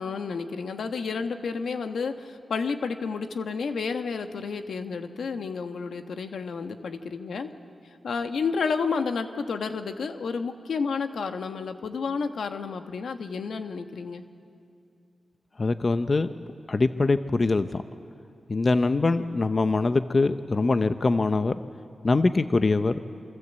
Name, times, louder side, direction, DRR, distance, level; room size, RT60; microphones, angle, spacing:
voice 1, 0.0-7.5 8.0-14.2, left 5 dB, 80° left, 7 dB, 1.4 m, -31 dB
voice 2, 15.6-16.3 16.7-17.8 18.5-21.6 22.0-23.0, left 3 dB, 40° left, 10 dB, 0.8 m, -23 dB
27.0 x 24.5 x 8.3 m, 2.5 s
cardioid pair, 85°, 0 cm